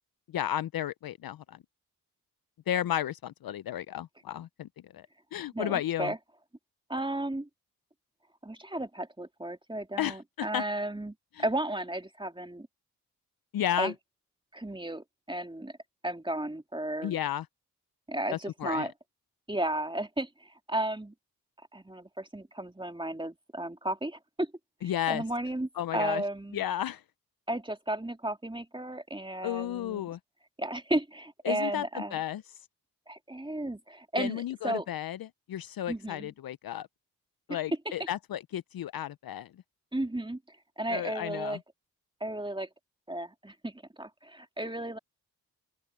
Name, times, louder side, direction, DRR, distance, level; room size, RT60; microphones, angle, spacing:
voice 1, 0.3-1.6 2.7-4.7 4.9-5.1 5.3-6.1 10.0-10.6 11.3-11.4 13.5-13.9 17.0-17.5 18.3-18.9 24.8-25.2 25.8-26.2 26.5-27.0 29.4-30.2 31.4-32.4 34.2-36.9 37.5-39.5 40.9-41.6, left 11 dB, 60° left, 0.7 m, -33 dB
voice 2, 5.5-6.2 6.9-7.5 8.4-11.1 11.4-12.7 13.8-13.9 14.5-15.7 16.0-17.2 18.1-18.9 19.5-21.1 21.7-24.5 24.8-26.6 27.5-30.1 30.6-32.2 33.1-34.9 35.9-36.3 37.5-37.6 39.9-40.4 40.8-41.6 42.2-42.7 43.1-45.0, right 1 dB, 10° right, 2.7 m, -34 dB
open air
hypercardioid pair, 40°, 41 cm